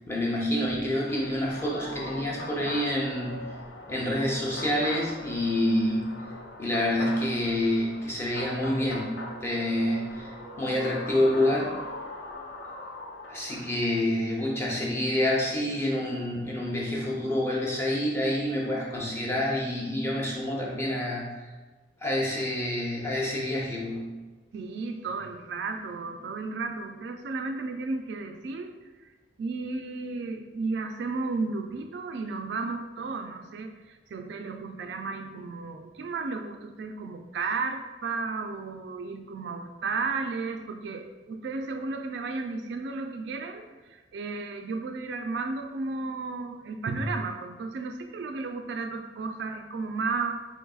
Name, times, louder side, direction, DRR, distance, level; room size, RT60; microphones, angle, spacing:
voice 1, 0.1-3.4 3.9-6.2 6.6-10.3 10.6-11.7 13.3-21.3 22.0-24.1, left 1 dB, 15° left, -3 dB, 0.6 m, -27 dB
sound 1, 1.1-14.0, left 1 dB, 70° left, 0.5 m, -41 dB
voice 2, 24.5-29.1 29.4-50.4, right 3 dB, 65° right, 5 dB, 0.3 m, -33 dB
3.9 x 3.5 x 2.3 m, 1.3 s
head